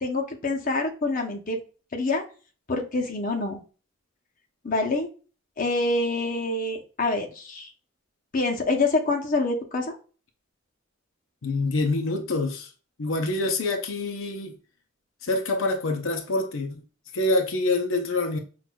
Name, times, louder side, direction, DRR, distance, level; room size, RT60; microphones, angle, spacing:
voice 1, 0.0-1.6 1.9-2.2 2.7-3.6 4.6-5.1 5.6-7.7 8.3-10.0, left 2 dB, 40° left, 0.8 m, -26 dB
voice 2, 11.4-12.7 13.0-14.6 15.2-16.8 17.1-18.4, left 2 dB, 75° left, 0.7 m, -26 dB
6.1 x 2.5 x 2.3 m
head